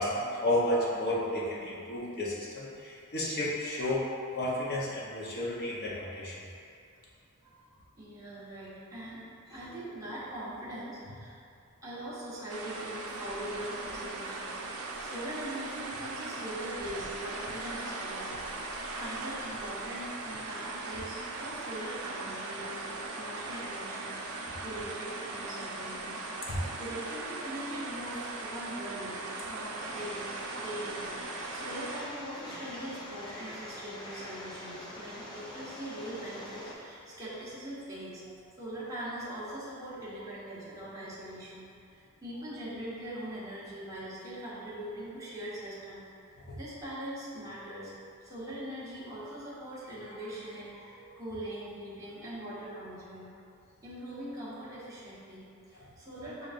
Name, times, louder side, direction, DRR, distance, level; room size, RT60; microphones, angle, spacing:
voice 1, 0.0-4.1 4.3-6.3 46.5-46.6, left 1 dB, 45° left, -5 dB, 0.8 m, -32 dB
voice 2, 7.4-9.2 9.5-11.4 11.8-30.3 30.6-47.9 48.2-53.3 53.8-56.5, right 1 dB, 15° right, -12 dB, 1.1 m, -42 dB
sound 1, 12.5-32.0, right 3 dB, 70° right, 0.5 m, -39 dB
sound 2, 29.8-36.7, left 1 dB, 20° left, 0.5 m, -44 dB
6.7 x 2.5 x 2.5 m, 2.4 s
head